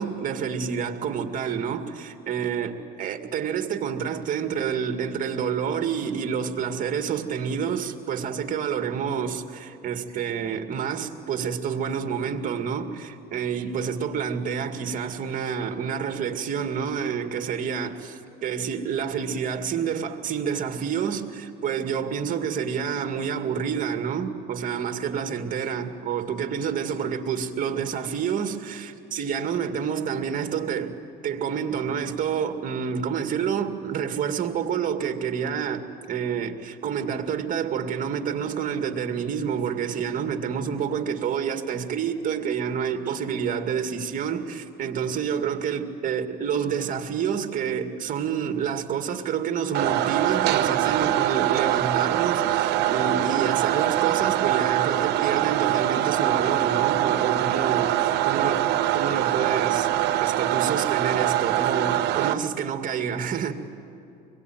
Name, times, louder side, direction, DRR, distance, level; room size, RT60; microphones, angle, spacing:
voice 1, 0.0-59.9 60.2-63.5, right 7 dB, 55° right, 2.2 m, -28 dB
sound 1, 49.7-62.3, right 13 dB, 80° right, 0.9 m, -23 dB
26.5 x 22.5 x 9.3 m
cardioid pair, 110°, 17 cm